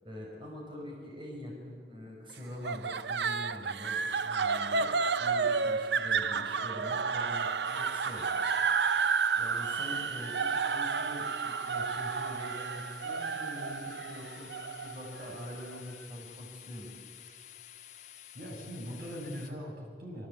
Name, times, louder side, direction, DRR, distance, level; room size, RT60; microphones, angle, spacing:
voice 1, 0.0-4.9 5.2-8.2 9.4-14.5 14.8-16.9, left 1 dB, 30° right, -2 dB, 5.8 m, -44 dB
sound 1, 2.6-15.8, right 5 dB, 75° right, 0.8 m, -31 dB
sound 2, 7.6-19.5, left 10 dB, 40° left, 2.1 m, -51 dB
voice 2, 18.3-20.3, equal, 55° right, 0 dB, 6.9 m, -41 dB
26.5 x 25.0 x 8.4 m, 2.1 s
head